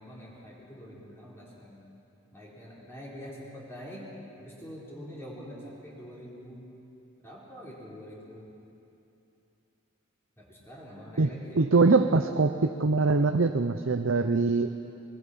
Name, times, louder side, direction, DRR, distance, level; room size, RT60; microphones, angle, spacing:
voice 1, 0.0-1.8 2.3-4.1 4.4-6.7 7.2-8.5 10.4-11.6, equal, 10° left, -6 dB, 4.2 m, -45 dB
voice 2, 11.2-14.7, right 3 dB, 70° right, 7 dB, 0.8 m, -23 dB
24.0 x 22.5 x 5.7 m, 2.9 s
head